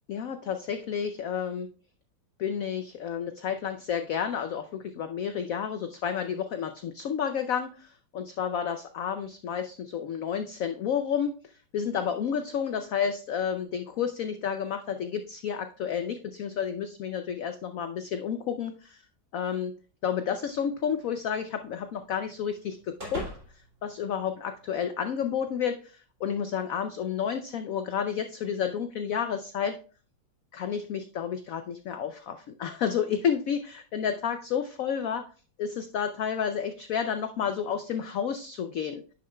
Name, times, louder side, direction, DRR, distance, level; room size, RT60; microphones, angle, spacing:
voice 1, 0.1-1.7 2.4-19.0 19.3-19.8 20.0-23.2 23.8-29.8 30.5-35.2 35.6-39.0, left 7 dB, 75° left, 8 dB, 0.7 m, -31 dB
sound 1, 20.4-24.8, right 1 dB, 40° right, 2.7 m, -44 dB
10.0 x 6.7 x 2.2 m, 0.39 s
omnidirectional pair, 2.0 m